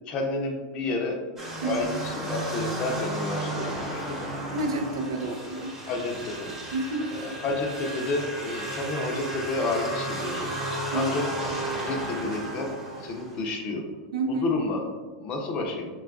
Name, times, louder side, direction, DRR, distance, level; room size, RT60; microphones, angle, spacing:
voice 1, 0.1-1.2 1.6-4.2 5.9-6.6 7.1-10.5 10.9-11.3 11.7-12.7 13.0-13.9 14.3-14.8 15.2-15.9, left 2 dB, 40° left, 2 dB, 0.6 m, -30 dB
sound 1, 1.4-13.5, right 1 dB, 20° right, 0.9 m, -34 dB
voice 2, 4.5-5.7 6.7-7.1 10.9-11.0 14.1-14.5, right 2 dB, 85° right, 4 dB, 0.4 m, -29 dB
3.7 x 2.3 x 2.4 m, 1.4 s
hypercardioid pair, 115°, 2 cm